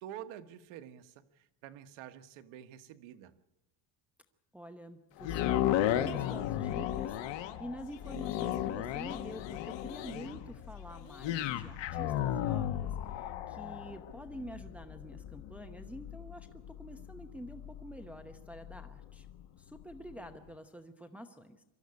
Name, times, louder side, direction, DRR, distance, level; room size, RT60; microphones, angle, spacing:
voice 1, 0.0-3.3, right 11 dB, 85° right, 9 dB, 1.4 m, -48 dB
voice 2, 4.5-16.5 16.8-19.3 19.6-21.6, equal, 5° right, 6 dB, 0.8 m, -47 dB
sound 1, 5.2-19.4 19.9-20.0, left 12 dB, 65° left, 1.5 m, -35 dB
23.5 x 13.0 x 9.7 m, 0.98 s
cardioid pair, 160°, 47 cm